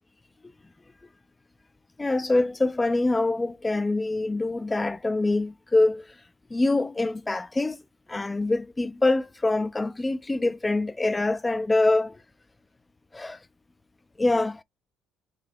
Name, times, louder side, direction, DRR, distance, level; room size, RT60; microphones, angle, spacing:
voice 1, 2.0-6.1 6.5-7.8 8.1-12.2 13.1-13.4 14.2-14.6, left 2 dB, 20° left, 0.5 m, -25 dB
4.9 x 2.8 x 3.7 m
supercardioid pair, 65°, 0 cm